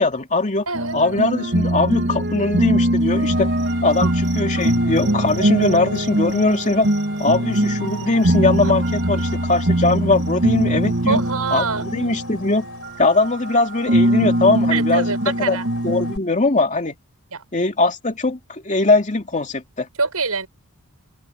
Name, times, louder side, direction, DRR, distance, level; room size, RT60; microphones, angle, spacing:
voice 1, 0.0-0.6 0.9-3.5 3.8-6.9 7.2-11.2 11.5-12.7 13.0-15.1 15.4-16.9 17.5-19.9, left 3 dB, 35° left, 2.6 m, -20 dB
sound 1, 0.7-13.6 13.9-16.1, right 1 dB, 55° right, 2.6 m, -21 dB
voice 2, 0.7-1.0 4.0-4.1 8.6-8.7 11.1-11.8 14.7-15.7 17.3-17.4 20.0-20.5, right 4 dB, 75° right, 7.3 m, -24 dB
sound 2, 3.0-16.2, left 2 dB, 70° left, 5.9 m, -39 dB
open air
head